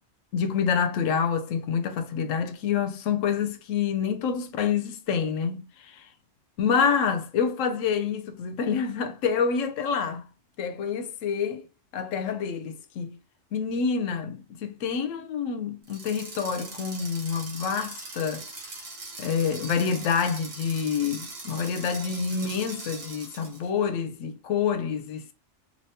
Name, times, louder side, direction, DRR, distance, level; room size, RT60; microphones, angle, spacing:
voice 1, 0.3-6.0 6.6-10.2 10.6-11.6 11.9-13.1 13.5-18.4 19.2-25.3, left 6 dB, 85° left, 0.9 m, -27 dB
sound 1, 15.8-23.7, right 3 dB, 75° right, 1.3 m, -41 dB
3.3 x 2.8 x 2.8 m
omnidirectional pair, 1.3 m